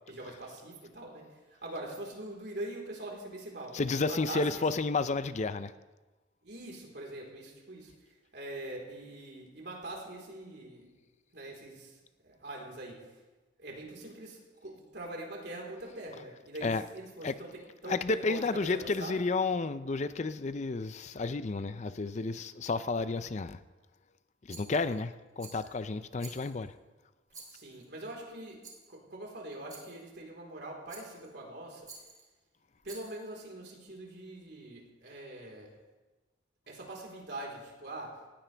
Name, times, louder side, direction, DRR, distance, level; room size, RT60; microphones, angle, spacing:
voice 1, 0.1-1.2 1.6-4.6 6.4-7.9 8.3-10.9 11.3-12.0 12.2-12.9 13.6-17.5 17.8-19.2 27.5-28.6 28.9-31.9 32.8-35.7 36.7-38.1, right 1 dB, 60° right, -1 dB, 4.0 m, -43 dB
voice 2, 3.7-5.7 16.6-16.8 17.2-17.3 17.9-23.6 24.5-26.7, left 3 dB, 40° left, 12 dB, 0.5 m, -31 dB
Rattle, 24.5-25.0 25.4-25.8 26.2-26.7 27.3-27.9 28.6-28.9 29.7-30.1 30.9-31.3 31.8-32.3 32.8-33.3, right 4 dB, 20° right, 3.1 m, -51 dB
19.0 x 16.5 x 3.4 m, 1.2 s
head